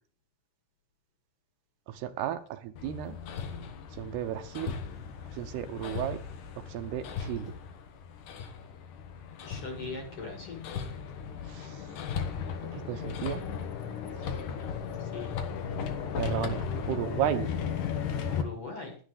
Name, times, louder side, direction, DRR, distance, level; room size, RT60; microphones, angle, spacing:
voice 1, 1.9-3.2 3.9-4.7 5.3-6.2 6.7-7.5 11.5-11.9 12.7-13.5 16.2-17.5, right 11 dB, 85° right, 9 dB, 3.0 m, -34 dB
Hammer, 2.8-18.4, left 7 dB, 60° left, 2.6 m, -36 dB
voice 2, 9.4-10.6 15.0-15.3 18.3-19.0, left 3 dB, 40° left, 4 dB, 2.7 m, -40 dB
11.5 x 10.0 x 5.1 m, 0.42 s
omnidirectional pair, 4.6 m